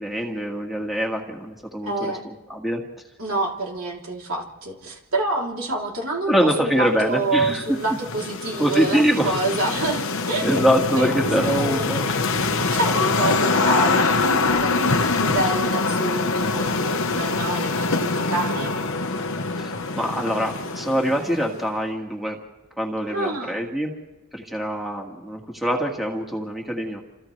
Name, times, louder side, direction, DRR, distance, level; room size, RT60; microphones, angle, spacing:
voice 1, 0.0-2.1 2.5-2.8 6.3-7.6 8.6-9.4 10.4-12.1 19.6-22.4 22.8-23.9 24.3-27.0, equal, ahead, 0 dB, 1.9 m, -24 dB
voice 2, 1.8-2.2 3.2-10.6 11.0-11.1 11.4-18.7 23.1-23.7, right 2 dB, 65° right, -2 dB, 3.2 m, -27 dB
sound 1, 7.1-21.6, left 3 dB, 60° left, 1.2 m, -24 dB
28.5 x 27.5 x 3.3 m, 1.1 s
head